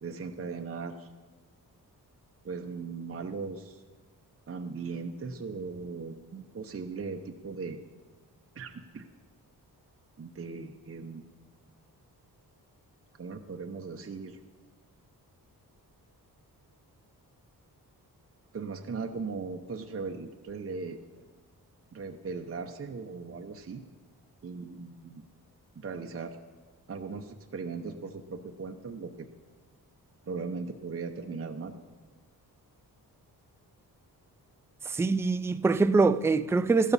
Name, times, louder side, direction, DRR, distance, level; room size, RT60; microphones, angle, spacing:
voice 1, 0.0-1.1 2.4-3.8 4.5-7.8 8.6-9.1 10.2-11.2 13.2-14.4 18.5-21.0 21.9-23.8 24.4-25.2 25.8-26.4 26.9-29.3 30.3-31.7, right 4 dB, 35° right, 0.7 m, -38 dB
voice 2, 34.9-36.9, right 3 dB, 5° right, 0.3 m, -24 dB
14.5 x 12.5 x 4.1 m
cardioid pair, 75°, 39 cm